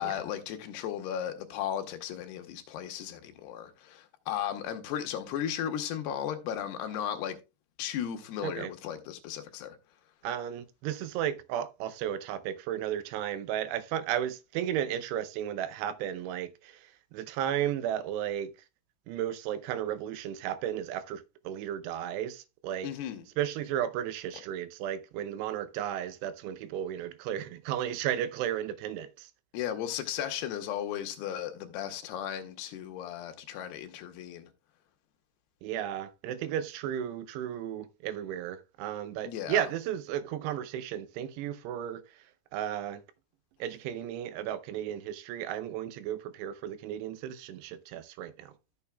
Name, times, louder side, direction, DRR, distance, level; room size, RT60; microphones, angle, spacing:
voice 1, 0.0-7.4 7.8-9.8 22.8-23.2 29.5-34.5 39.2-39.6, left 10 dB, 80° left, 2.9 m, -35 dB
voice 2, 10.2-18.5 19.1-22.9 23.4-29.3 35.6-42.0 42.5-43.0 43.6-48.5, right 10 dB, 85° right, 2.8 m, -34 dB
13.0 x 7.0 x 2.2 m
omnidirectional pair, 4.9 m